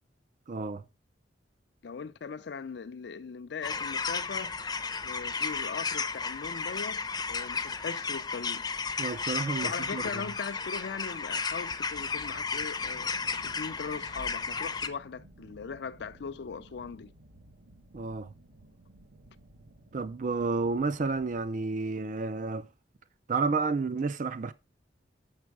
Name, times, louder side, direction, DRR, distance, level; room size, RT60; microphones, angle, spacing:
voice 1, 0.5-0.8 9.0-10.0 17.9-18.3 19.9-22.7 23.3-24.5, right 4 dB, 45° right, 0.4 m, -31 dB
voice 2, 1.8-8.6 9.6-17.1, left 5 dB, 65° left, 0.4 m, -40 dB
sound 1, 3.6-14.9, left 5 dB, 20° left, 0.6 m, -33 dB
sound 2, 11.9-21.5, right 1 dB, 70° right, 1.0 m, -54 dB
7.4 x 6.1 x 4.6 m
head